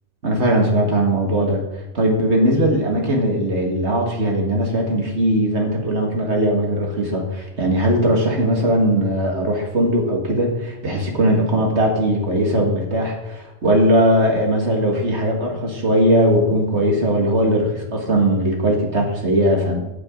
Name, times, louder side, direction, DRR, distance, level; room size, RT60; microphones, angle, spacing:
voice 1, 0.2-1.6 1.9-19.8, right 1 dB, 65° right, 1 dB, 2.2 m, -19 dB
14.5 x 8.8 x 3.8 m, 0.97 s
omnidirectional pair, 1.2 m